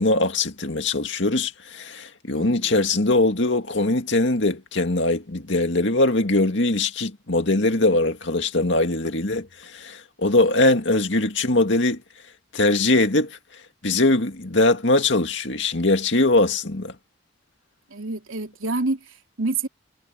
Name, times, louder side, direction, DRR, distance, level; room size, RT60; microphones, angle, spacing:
voice 1, 0.0-12.0 12.5-13.4 13.8-17.0, left 2 dB, 60° left, 2.3 m, -21 dB
voice 2, 2.3-2.9 10.4-10.7 17.9-19.7, right 3 dB, 80° right, 3.2 m, -29 dB
head